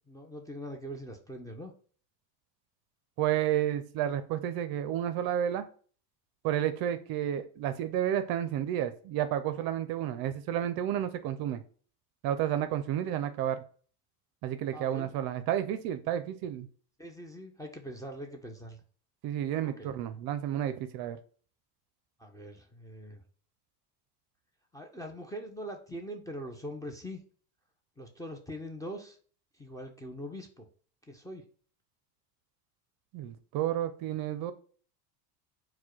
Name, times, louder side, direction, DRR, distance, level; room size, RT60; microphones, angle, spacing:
voice 1, 0.1-1.7 14.7-15.1 17.0-18.8 19.6-19.9 22.2-23.2 24.7-27.2 28.0-29.2 29.6-30.7 31.1-31.5, equal, 10° left, 1 dB, 0.5 m, -42 dB
voice 2, 3.2-5.7 6.4-11.6 12.2-13.6 14.4-16.7 19.2-21.2 33.1-34.5, right 11 dB, 50° right, 11 dB, 0.5 m, -31 dB
4.4 x 2.2 x 4.4 m, 0.42 s
supercardioid pair, 105°, 47 cm